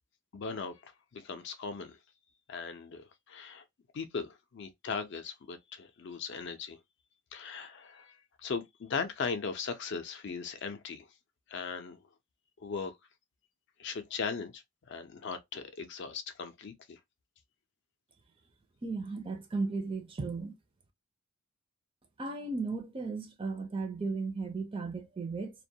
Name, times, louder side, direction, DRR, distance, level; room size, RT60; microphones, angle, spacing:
voice 1, 0.3-2.0 2.5-3.6 3.9-6.8 7.3-11.1 11.5-12.0 12.6-12.9 13.8-14.6 14.9-17.0, left 5 dB, 55° left, 0.4 m, -38 dB
voice 2, 18.8-20.5 22.2-25.5, right 3 dB, 25° right, 0.4 m, -35 dB
2.2 x 2.1 x 2.7 m
head